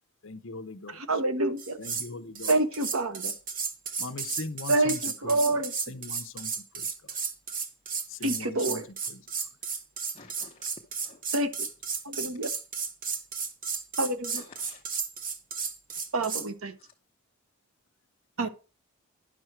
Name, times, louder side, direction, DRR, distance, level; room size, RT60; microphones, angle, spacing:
voice 1, 0.2-1.2 1.8-2.5 4.0-5.6 5.9-7.1 8.1-8.8 9.1-9.2 18.4-18.5, left 3 dB, 60° left, 0.8 m, -41 dB
voice 2, 0.9-1.8 2.5-3.3 4.7-6.0 8.2-8.9 11.3-11.5 12.0-12.5 14.0-14.4 16.1-16.7 18.4-18.5, right 2 dB, 75° right, 1.2 m, -27 dB
sound 1, 1.6-2.1 2.4-16.5, right 5 dB, 40° right, 1.2 m, -33 dB
voice 3, 10.1-11.2 12.2-12.3 14.2-14.8 15.9-16.0 16.8-16.9, left 3 dB, 25° left, 0.8 m, -52 dB
11.0 x 6.3 x 4.5 m
head